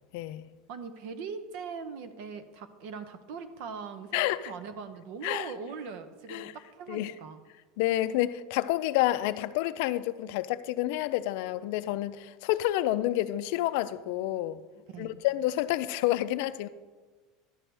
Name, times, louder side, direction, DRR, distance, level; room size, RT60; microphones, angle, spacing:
voice 1, 0.1-0.5 4.1-4.5 5.2-5.5 6.3-6.5 6.9-7.1 7.8-14.6 15.0-16.7, left 15 dB, 65° left, 0.4 m, -29 dB
voice 2, 0.7-7.4 14.9-15.2, right 5 dB, 65° right, 0.7 m, -41 dB
11.5 x 7.7 x 3.3 m
supercardioid pair, 155°, 0 cm